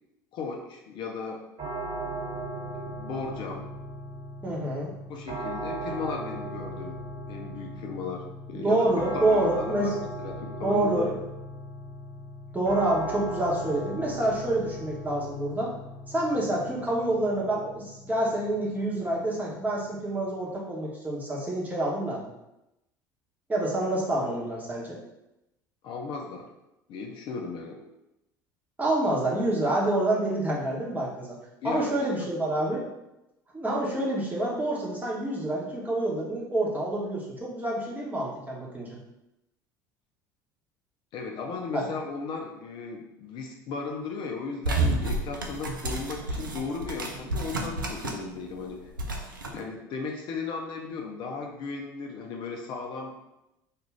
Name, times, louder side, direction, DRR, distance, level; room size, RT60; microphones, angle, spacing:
voice 1, 0.3-1.5 2.8-3.7 5.1-7.0 7.3-11.1 25.8-26.5 26.9-27.8 31.6-32.3 41.1-48.8 49.5-53.1, left 4 dB, 50° left, 1 dB, 0.4 m, -36 dB
sound 1, 1.6-20.5, right 1 dB, 50° right, 1.4 m, -38 dB
voice 2, 4.4-4.9 8.5-9.9 10.6-11.1 12.5-15.7 16.1-22.3 23.5-25.0 28.8-31.4 31.6-32.9 33.5-39.0 41.7-41.9, right 1 dB, 15° right, -4 dB, 1.0 m, -27 dB
sound 2, 44.6-48.3 48.6-49.5, right 2 dB, 90° right, 0.4 m, -30 dB
2.4 x 2.4 x 3.1 m, 0.91 s
hypercardioid pair, 65°, 11 cm